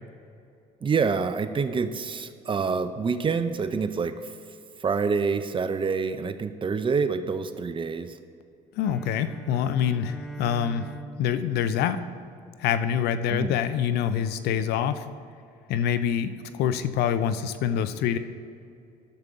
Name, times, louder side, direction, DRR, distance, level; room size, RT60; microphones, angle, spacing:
voice 1, 0.8-4.3 4.8-8.2 13.3-13.5, right 5 dB, 30° right, 11 dB, 0.6 m, -27 dB
voice 2, 8.7-10.9 11.2-12.0 12.6-15.1 15.7-18.2, left 9 dB, 75° left, 12 dB, 0.6 m, -26 dB
Bowed string instrument, 8.8-13.0, right 2 dB, ahead, 0.8 m, -43 dB
13.0 x 6.7 x 3.7 m, 2.5 s
supercardioid pair, 75°, 17 cm